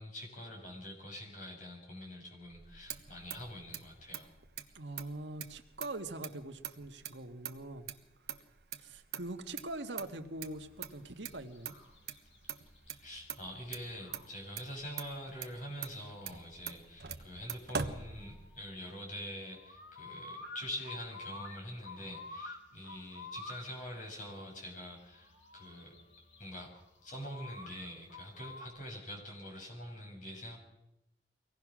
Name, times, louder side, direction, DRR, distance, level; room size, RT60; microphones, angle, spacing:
voice 1, 0.0-4.3 13.0-25.9 26.4-26.7 27.0-30.6, equal, 45° left, 0 dB, 6.5 m, -45 dB
Motor vehicle (road), 2.5-18.7, right 6 dB, 60° right, 1.2 m, -45 dB
voice 2, 4.7-7.9 8.8-11.7, right 2 dB, 80° right, 6 dB, 1.7 m, -43 dB
sound 1, 10.4-28.7, left 2 dB, 80° left, 2.7 m, -52 dB
23.5 x 17.5 x 6.2 m, 0.87 s
head